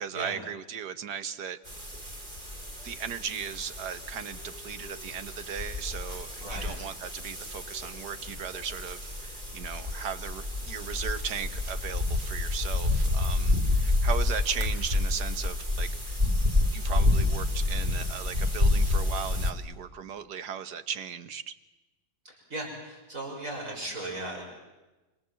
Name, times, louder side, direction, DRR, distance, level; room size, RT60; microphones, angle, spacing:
voice 1, 0.0-1.6 2.8-16.2 16.7-21.6, right 7 dB, 65° right, 11 dB, 1.7 m, -37 dB
sound 1, 1.7-19.5, left 2 dB, 25° right, 2.9 m, -29 dB
voice 2, 22.3-24.4, right 2 dB, 45° right, 0 dB, 6.9 m, -37 dB
27.5 x 26.0 x 7.7 m, 1.1 s
omnidirectional pair, 1.9 m